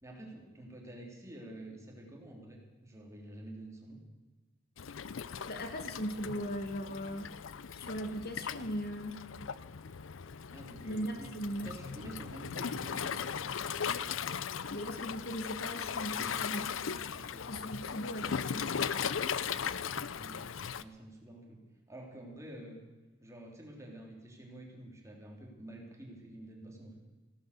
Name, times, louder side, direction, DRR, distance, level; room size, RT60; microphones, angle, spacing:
voice 1, 0.0-4.0 10.5-11.3 11.6-14.1 14.6-14.9 17.1-17.5 19.3-21.6 21.9-22.8 23.2-27.0, right 1 dB, 15° right, 0 dB, 3.5 m, -49 dB
Waves surf, 4.8-20.8, left 7 dB, 75° left, 0.6 m, -38 dB
voice 2, 5.5-7.3 7.7-9.2 10.8-11.7 14.6-16.8 17.4-18.7, equal, 50° left, 7 dB, 1.4 m, -39 dB
16.0 x 12.5 x 6.8 m, 1.2 s
head